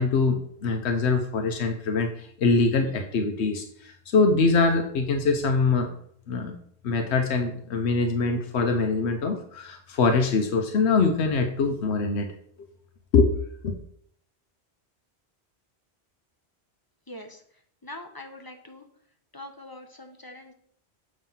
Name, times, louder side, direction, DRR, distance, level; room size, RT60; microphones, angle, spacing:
voice 1, 0.0-2.1 2.4-5.9 6.3-6.6 6.8-12.3 13.1-13.3 13.6-13.8, left 4 dB, 85° left, 5 dB, 1.0 m, -23 dB
voice 2, 17.1-17.4 17.8-18.8 19.3-20.5, left 1 dB, 25° left, 5 dB, 0.6 m, -43 dB
7.3 x 3.1 x 5.5 m, 0.65 s
omnidirectional pair, 1.1 m